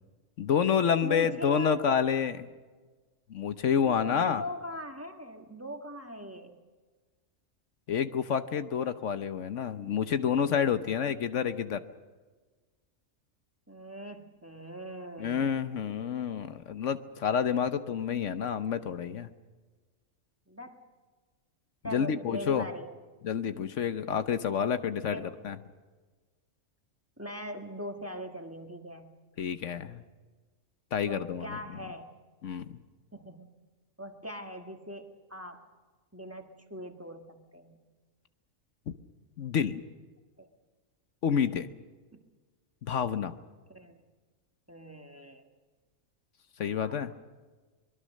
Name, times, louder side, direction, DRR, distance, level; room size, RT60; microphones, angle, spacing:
voice 1, 0.4-2.4 3.3-4.4 7.9-11.8 15.2-19.3 21.9-22.7 23.2-25.6 29.4-30.0 30.9-31.6 32.4-32.8 39.4-39.8 41.2-41.7 42.9-43.3 46.6-47.1, left 7 dB, 70° left, 11 dB, 1.2 m, -29 dB
voice 2, 1.0-2.1 3.8-6.6 13.7-15.6 20.5-20.8 21.8-23.0 25.1-25.5 27.2-29.1 31.0-32.1 33.1-33.5 34.0-35.6 36.1-37.8 40.4-40.5 42.1-42.2 43.7-44.0 44.7-45.5 46.8-47.2, equal, 10° right, 4 dB, 1.5 m, -41 dB
24.0 x 21.5 x 6.5 m, 1.4 s
omnidirectional pair, 1.3 m